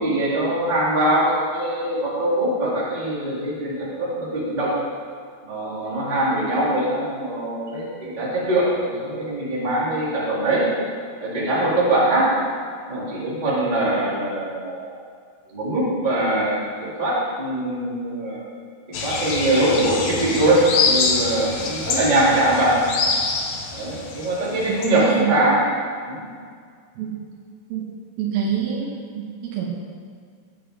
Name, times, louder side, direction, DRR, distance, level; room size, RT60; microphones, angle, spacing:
voice 1, 0.0-4.8 5.4-10.7 11.2-12.5 12.9-15.0 15.5-18.4 18.9-22.8 23.7-25.6 26.1-26.2, right 1 dB, 10° right, -7 dB, 2.8 m, -22 dB
sound 1, 18.9-24.9, left 4 dB, 65° left, 2.2 m, -25 dB
voice 2, 24.7-25.4 27.0-27.2 27.7-27.9 28.2-29.7, right 8 dB, 80° right, -3 dB, 5.0 m, -26 dB
19.5 x 9.3 x 5.5 m, 2.1 s
omnidirectional pair, 5.7 m